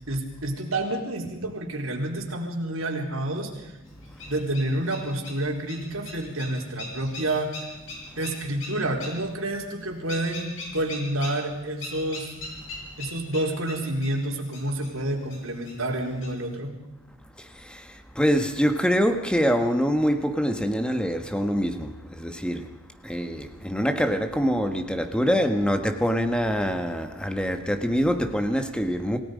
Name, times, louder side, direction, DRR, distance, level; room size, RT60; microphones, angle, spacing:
voice 1, 0.1-3.8 4.3-7.7 8.2-12.3 13.0-16.7, right 1 dB, 75° right, 4.2 m, -29 dB
sound 1, 3.9-16.5, left 2 dB, 65° left, 7.4 m, -42 dB
voice 2, 17.4-22.8 23.0-29.2, equal, 5° left, 1.5 m, -25 dB
28.5 x 17.5 x 5.3 m
head